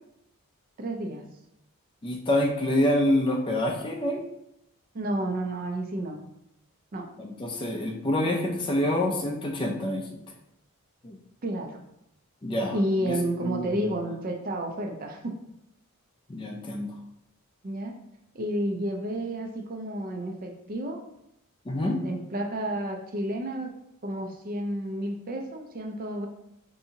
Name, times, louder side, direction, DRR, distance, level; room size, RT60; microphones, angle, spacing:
voice 1, 0.8-1.2 4.9-6.2 6.9-7.1 11.4-11.8 12.7-15.2 17.6-17.9 18.3-21.0 21.8-23.7 24.0-26.3, right 1 dB, 40° right, 3 dB, 0.4 m, -31 dB
voice 2, 2.0-4.2 7.2-10.2 11.0-11.2 12.4-13.2 13.4-13.9 16.3-16.9 21.7-22.0, left 1 dB, 20° left, 1 dB, 0.4 m, -27 dB
4.5 x 2.7 x 2.7 m, 0.80 s
head